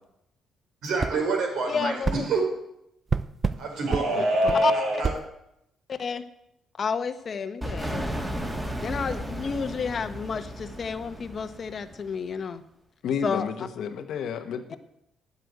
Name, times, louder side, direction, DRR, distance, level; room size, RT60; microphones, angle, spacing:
voice 1, 0.8-2.4 3.6-5.1, right 2 dB, 75° right, 2 dB, 4.4 m, -25 dB
sound 1, 1.0-1.2 2.0-2.2 3.1-3.6 3.9-4.1 4.5-4.6 5.0-5.2, right 4 dB, 35° right, 0.5 m, -26 dB
voice 2, 1.7-2.3 4.6-4.7 5.9-6.2 6.8-8.2 8.8-12.6 13.2-13.5 14.7-14.8, left 6 dB, 45° left, 10 dB, 1.0 m, -30 dB
voice 3, 4.1-4.6 13.0-14.8, left 7 dB, 75° left, 7 dB, 1.1 m, -32 dB
sound 2, 7.6-12.3, equal, 15° right, 2.4 m, -34 dB
9.8 x 7.9 x 9.3 m, 0.82 s
cardioid pair, 90°, 0 cm